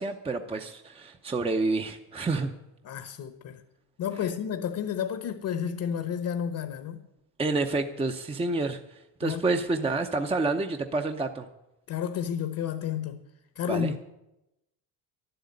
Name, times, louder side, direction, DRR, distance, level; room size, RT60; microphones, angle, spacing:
voice 1, 0.0-2.5 7.4-11.5 13.7-13.9, right 3 dB, 15° right, 0.7 m, -29 dB
voice 2, 2.8-3.6 4.0-7.0 9.2-9.4 11.9-13.2 13.6-14.0, left 8 dB, 50° left, 1.0 m, -31 dB
12.0 x 8.0 x 9.6 m
cardioid pair, 120°, 41 cm